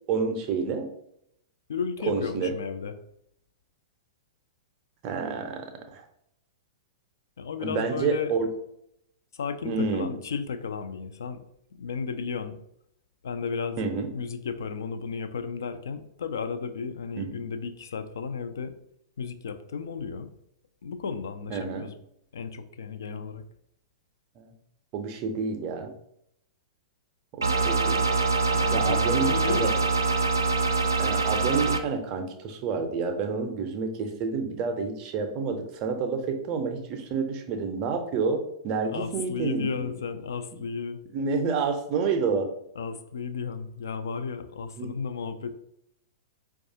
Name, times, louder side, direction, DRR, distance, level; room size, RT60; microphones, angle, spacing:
voice 1, 0.1-0.9 2.1-2.5 5.0-6.0 7.6-8.5 9.6-10.1 13.8-14.1 17.2-17.4 21.5-21.9 24.4-24.5 24.9-25.9 27.3-28.0 28.7-29.7 31.0-39.9 41.1-42.5 44.8-44.9, right 5 dB, 35° right, 5 dB, 0.6 m, -29 dB
voice 2, 1.7-3.0 7.4-8.3 9.3-11.4 11.8-12.6 13.2-18.8 19.2-20.3 20.8-22.0 22.3-23.4 28.5-29.9 38.8-41.0 42.8-45.6, left 5 dB, 65° left, 9 dB, 0.4 m, -33 dB
sound 1, 27.4-31.8, right 4 dB, 80° right, 0.4 m, -24 dB
4.5 x 2.3 x 2.7 m, 0.75 s
figure-of-eight pair, 105°, 2 cm